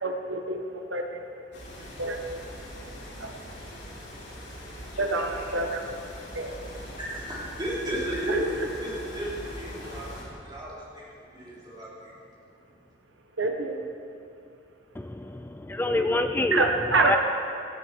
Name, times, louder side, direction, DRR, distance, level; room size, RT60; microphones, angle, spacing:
voice 1, 0.0-1.1 2.0-2.2 3.2-3.3 5.0-5.8 6.3-6.5 8.3-8.4 13.4-13.7 16.5-17.2, right 3 dB, 90° right, 3 dB, 1.5 m, -26 dB
sound 1, 1.5-10.2, equal, 70° left, 4.3 m, -41 dB
voice 2, 7.0-8.6 8.8-10.1 10.4-12.1, right 1 dB, 25° right, -7 dB, 4.2 m, -34 dB
voice 3, 15.0-17.2, left 2 dB, 10° left, 7 dB, 0.4 m, -27 dB
18.0 x 12.0 x 4.7 m, 2.6 s
head